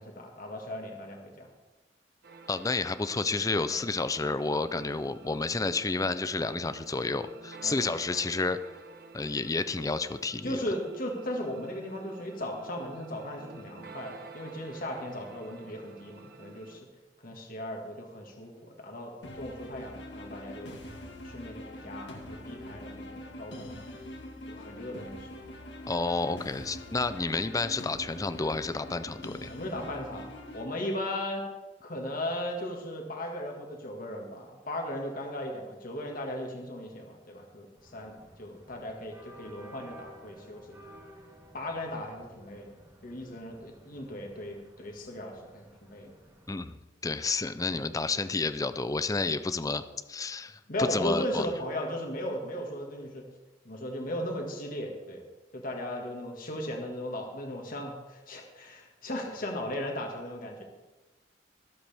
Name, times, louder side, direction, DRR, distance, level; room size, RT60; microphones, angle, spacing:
voice 1, 0.0-1.5 7.6-7.8 10.4-16.9 17.2-20.8 21.2-23.9 24.5-25.3 29.5-30.3 30.5-31.5 31.8-40.7 41.5-42.8 43.0-46.1 47.7-47.8 50.7-53.3 53.7-55.2 55.5-60.6, left 1 dB, 50° left, 1 dB, 1.8 m, -37 dB
sound 1, 2.2-16.8, right 4 dB, 60° right, 1.1 m, -50 dB
voice 2, 2.5-8.6 9.1-10.6 25.9-29.5 46.5-46.8 47.0-49.8 50.1-51.5, left 3 dB, 20° left, 12 dB, 0.4 m, -30 dB
sound 2, 19.2-30.7, left 1 dB, 70° left, 1.8 m, -44 dB
sound 3, 37.7-46.6, equal, 20° right, 1.9 m, -54 dB
23.5 x 8.0 x 3.5 m, 1.1 s
head